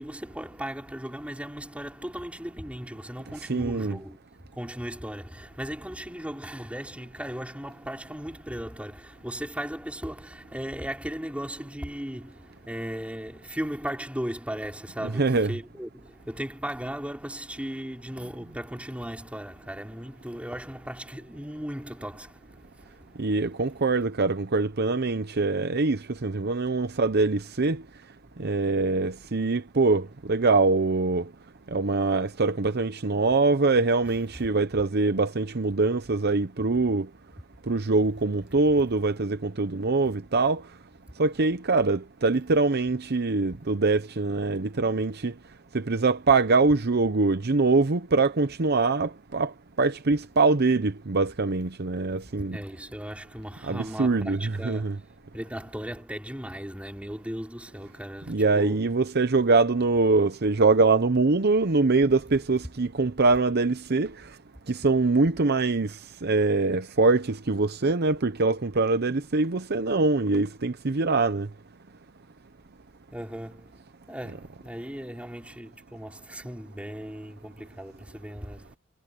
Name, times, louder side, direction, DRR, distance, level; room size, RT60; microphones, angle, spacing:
voice 1, 0.0-4.2 4.5-23.3 34.3-34.5 52.5-58.9 73.1-73.7 74.1-78.8, equal, 5° right, 3.7 m, -37 dB
voice 2, 3.5-4.0 15.2-15.5 23.2-27.8 28.4-31.3 31.7-37.1 37.7-40.6 41.2-45.3 45.7-49.5 49.8-52.6 53.7-54.9 58.3-64.1 64.7-66.0 66.2-71.5, right 3 dB, 55° right, 0.8 m, -23 dB
head